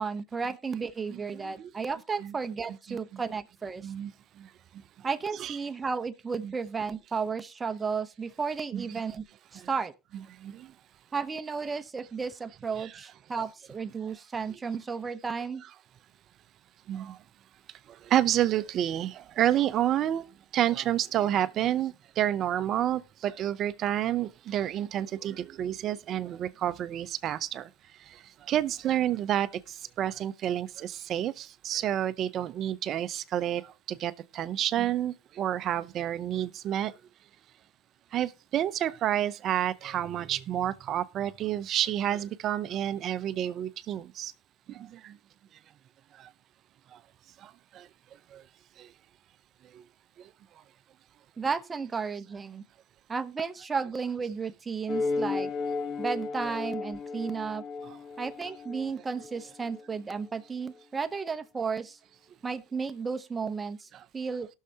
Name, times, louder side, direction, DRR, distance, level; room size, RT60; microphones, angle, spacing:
voice 1, 0.0-3.9 5.0-9.2 9.5-9.9 11.1-15.6 51.4-52.6 53.1-55.5 56.0-57.6 58.2-62.0 62.4-64.5, right 5 dB, 20° right, 0.9 m, -33 dB
voice 2, 18.1-20.2 20.5-27.7 28.5-29.5 30.0-33.6 33.9-36.9 38.1-44.3 45.0-45.1 47.7-47.8 48.3-48.4, right 11 dB, 45° right, 0.6 m, -29 dB
sound 1, 54.9-59.8, left 4 dB, 45° left, 1.0 m, -34 dB
18.5 x 6.5 x 2.8 m
supercardioid pair, 100°, 0 cm